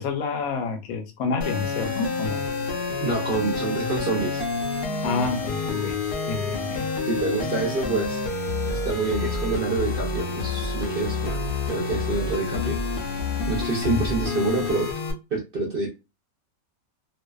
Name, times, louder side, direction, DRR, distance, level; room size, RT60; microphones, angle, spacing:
voice 1, 0.0-2.4 5.0-6.0 6.3-6.9 13.9-14.0, left 5 dB, 75° left, 1.0 m, -28 dB
sound 1, 1.4-15.1, left 4 dB, 60° left, 0.6 m, -28 dB
voice 2, 3.0-4.4 7.0-11.4 11.7-12.8 13.5-14.9 15.3-15.9, right 3 dB, 60° right, 0.6 m, -27 dB
2.5 x 2.2 x 2.2 m
omnidirectional pair, 1.5 m